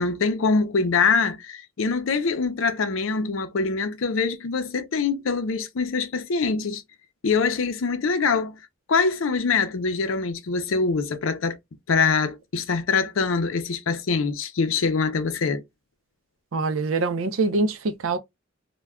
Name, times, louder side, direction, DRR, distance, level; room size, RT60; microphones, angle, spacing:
voice 1, 0.0-6.8 7.2-8.5 8.9-11.6 11.9-15.6, left 4 dB, 75° left, 0.5 m, -24 dB
voice 2, 16.5-18.2, right 3 dB, 80° right, 0.5 m, -24 dB
2.2 x 2.2 x 3.4 m
head